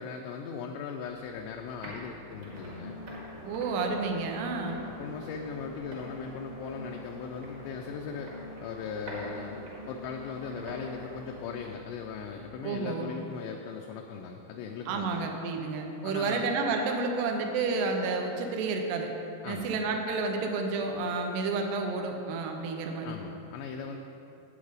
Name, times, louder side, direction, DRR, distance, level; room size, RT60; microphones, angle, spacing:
voice 1, 0.0-3.0 4.8-15.3 16.0-16.5 19.4-19.8 23.0-24.0, left 6 dB, 85° left, 2 dB, 2.6 m, -39 dB
sound 1, 1.1-12.5, left 1 dB, 50° right, 1.4 m, -48 dB
sound 2, 2.3-11.6, left 1 dB, 65° left, 0.8 m, -45 dB
voice 2, 3.4-4.8 12.6-13.1 14.9-19.1 19.5-23.2, right 4 dB, 80° right, 3 dB, 2.6 m, -30 dB
9.2 x 8.0 x 4.9 m, 2.8 s
omnidirectional pair, 5.3 m